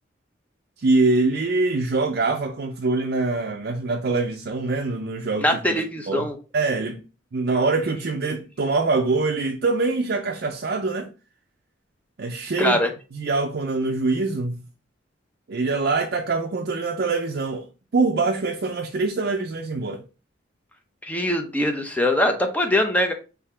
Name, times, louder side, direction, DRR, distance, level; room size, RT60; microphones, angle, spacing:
voice 1, 0.8-5.6 6.1-6.3 6.5-7.0 7.3-11.1 12.2-12.8 13.1-14.6 15.5-17.6 17.9-20.0, right 3 dB, 55° right, 0.5 m, -24 dB
voice 2, 5.4-6.4 12.6-12.9 21.0-23.1, left 1 dB, 10° left, 0.6 m, -22 dB
3.7 x 2.8 x 4.3 m
head